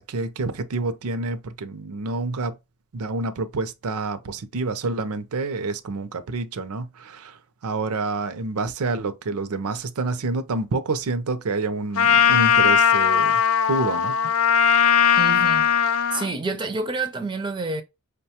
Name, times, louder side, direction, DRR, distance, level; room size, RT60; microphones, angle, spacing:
voice 1, 0.0-2.6 2.9-13.4 13.7-14.3, right 3 dB, 75° right, 0.5 m, -28 dB
Trumpet, 12.0-16.3, left 8 dB, 70° left, 0.5 m, -18 dB
voice 2, 15.2-15.7 16.1-17.8, right 3 dB, 20° right, 0.4 m, -28 dB
5.2 x 2.2 x 2.8 m
head